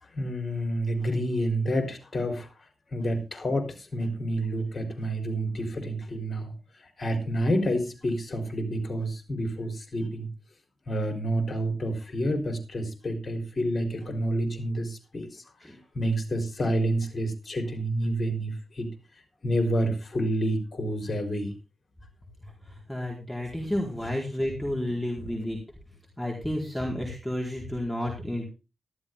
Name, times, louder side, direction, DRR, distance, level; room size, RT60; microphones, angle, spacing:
voice 1, 0.0-2.5 2.9-10.3 10.9-18.9 19.4-21.5 23.6-23.7, right 1 dB, 35° left, 4 dB, 4.0 m, -29 dB
voice 2, 22.9-25.6 26.2-28.4, left 1 dB, 5° left, -2 dB, 4.0 m, -31 dB
13.5 x 12.5 x 3.8 m, 0.31 s
wide cardioid pair, 125°, 0 cm